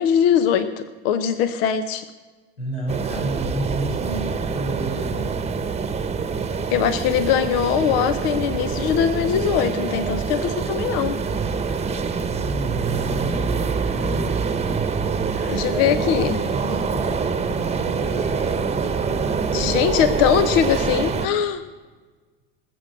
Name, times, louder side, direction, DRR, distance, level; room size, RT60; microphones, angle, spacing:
voice 1, 0.0-2.0 6.7-11.2 15.5-16.4 19.5-21.6, left 8 dB, 65° left, 12 dB, 0.9 m, -21 dB
voice 2, 2.6-5.4 12.3-14.5 15.2-19.0, right 1 dB, 85° left, -2 dB, 4.7 m, -32 dB
sound 1, 2.9-21.3, right 5 dB, 20° right, 1.1 m, -25 dB
19.5 x 7.9 x 6.5 m, 1.3 s
hypercardioid pair, 75°, 31 cm